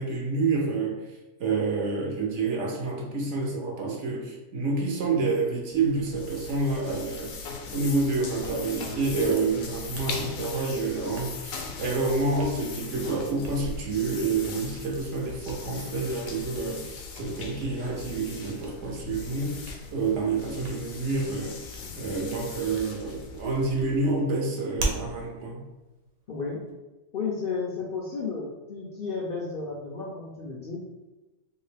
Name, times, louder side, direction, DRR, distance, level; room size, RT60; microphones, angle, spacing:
voice 1, 0.0-25.6, right 3 dB, 65° right, -1 dB, 0.9 m, -28 dB
sound 1, 5.7-24.2, left 5 dB, 80° left, 1.0 m, -40 dB
Hands, 8.2-26.7, right 2 dB, 85° right, 1.1 m, -43 dB
voice 2, 26.3-26.6 27.1-30.8, left 4 dB, 60° left, -3 dB, 0.6 m, -33 dB
3.0 x 2.8 x 3.2 m, 1.1 s
omnidirectional pair, 1.4 m